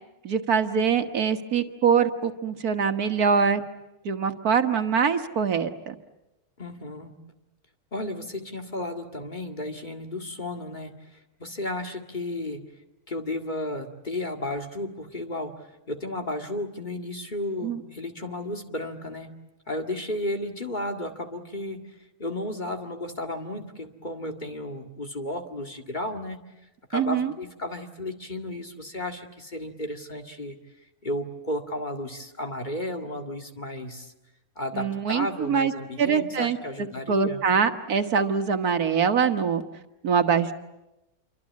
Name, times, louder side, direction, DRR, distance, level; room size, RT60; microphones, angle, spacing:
voice 1, 0.2-3.6 4.1-6.0 17.6-17.8 26.9-27.3 34.7-35.7 36.0-39.6 40.0-40.5, right 6 dB, 85° right, 7 dB, 1.9 m, -24 dB
voice 2, 6.6-7.1 7.9-12.6 13.1-19.3 19.7-21.8 22.2-26.4 26.9-30.6 31.0-34.1 34.6-37.4, left 1 dB, 30° left, 4 dB, 2.1 m, -33 dB
27.5 x 24.5 x 8.5 m, 0.98 s
omnidirectional pair, 1.5 m